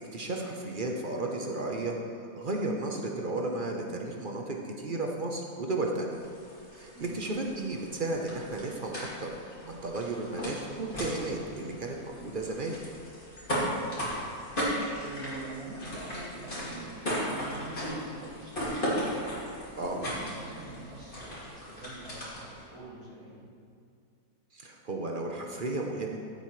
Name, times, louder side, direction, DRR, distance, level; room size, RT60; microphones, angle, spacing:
voice 1, 0.1-6.2 6.7-9.3 9.7-12.8 19.8-20.0 24.5-26.2, right 2 dB, 40° right, 1 dB, 0.8 m, -34 dB
sound 1, 6.1-22.6, equal, 35° left, 2.6 m, -36 dB
voice 2, 13.5-14.2 14.6-19.1 19.6-23.5, right 2 dB, 70° right, -7 dB, 2.7 m, -45 dB
14.5 x 8.1 x 3.2 m, 2.4 s
omnidirectional pair, 1.6 m